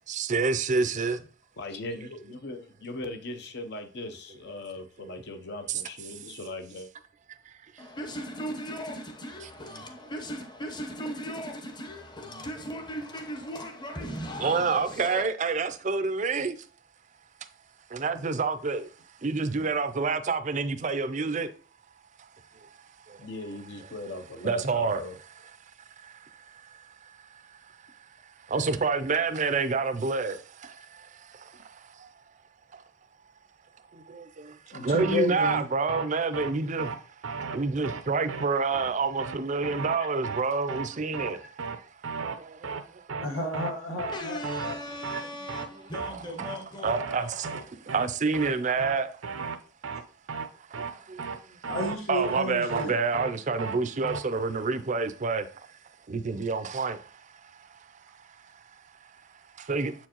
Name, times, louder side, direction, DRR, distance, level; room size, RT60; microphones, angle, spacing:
voice 1, 0.1-1.2 14.4-16.6 17.9-18.8 19.2-21.5 24.4-25.0 28.5-30.7 34.1-34.5 34.8-36.9 37.5-41.4 42.4-42.7 46.8-49.1 50.9-51.2 52.1-55.5 56.1-57.0 59.7-59.9, right 4 dB, 35° right, 0.4 m, -28 dB
voice 2, 1.6-6.9 23.2-25.2, left 2 dB, 55° left, 0.7 m, -39 dB
voice 3, 7.8-15.2 44.1-47.9, equal, 20° left, 0.8 m, -38 dB
voice 4, 34.7-35.6 40.0-40.1 43.2-44.8 51.7-52.9, left 1 dB, 85° left, 1.5 m, -32 dB
sound 1, 35.0-35.2 35.4-35.6 35.9-36.1 36.3-36.5 36.8-37.0 37.2-37.6 37.8-38.0 38.3-38.5 38.7-38.9 39.2-39.4 39.6-40.0 40.2-40.4 40.7-40.9 41.1-41.3 41.6-41.8 42.0-42.4 42.6-42.8 43.1-43.3 43.5-43.7 44.0-44.2 44.4-44.8 45.0-45.2 45.5-45.7 45.9-46.1 46.4-46.6 46.8-47.2 47.4-47.6 47.9-48.1 48.3-48.5 48.8-49.0 49.2-49.6 49.8-50.0 50.3-50.5 50.7-50.9 51.2-51.4 51.6-52.0 52.2-52.4 52.7-52.9 53.1-53.3 53.6-53.8 54.0-54.2, right 5 dB, 85° right, 0.6 m, -34 dB
7.3 x 4.5 x 2.9 m
head